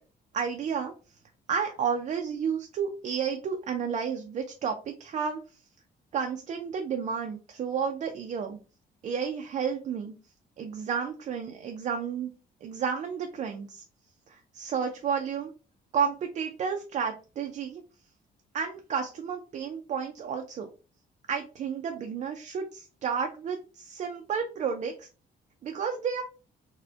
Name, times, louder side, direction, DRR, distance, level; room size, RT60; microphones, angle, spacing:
voice 1, 0.3-0.9 1.5-5.4 6.1-8.6 9.0-10.1 10.6-12.3 12.6-13.8 14.3-15.5 15.9-17.8 18.5-20.7 21.3-25.1 25.6-26.2, right 6 dB, 40° right, 4 dB, 0.4 m, -31 dB
4.1 x 2.1 x 2.7 m, 0.35 s
cardioid pair, 170°, 19 cm